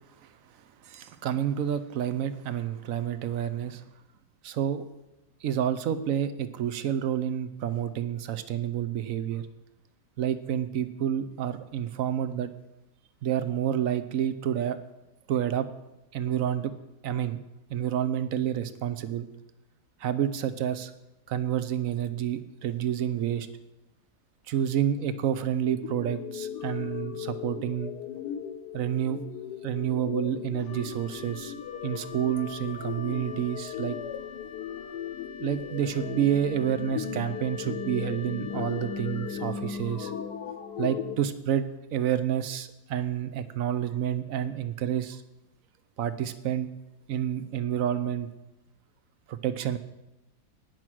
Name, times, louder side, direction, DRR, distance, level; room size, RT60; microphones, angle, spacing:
voice 1, 0.8-3.8 4.4-4.8 5.4-9.5 10.2-12.5 13.2-14.8 15.3-15.7 16.1-16.7 17.0-17.4 17.7-19.3 20.0-20.9 21.3-23.5 24.5-27.9 28.7-29.2 29.6-31.5 31.8-34.0 35.4-40.1 40.8-45.2 46.0-46.7 47.1-48.3 49.3-49.8, right 10 dB, 70° right, 12 dB, 0.8 m, -29 dB
sound 1, 25.1-41.2, left 9 dB, 65° left, 1.3 m, -37 dB
Wind instrument woodwind instrument, 30.6-40.1, left 6 dB, 90° left, 2.0 m, -45 dB
18.5 x 6.1 x 6.1 m, 0.96 s
omnidirectional pair, 2.1 m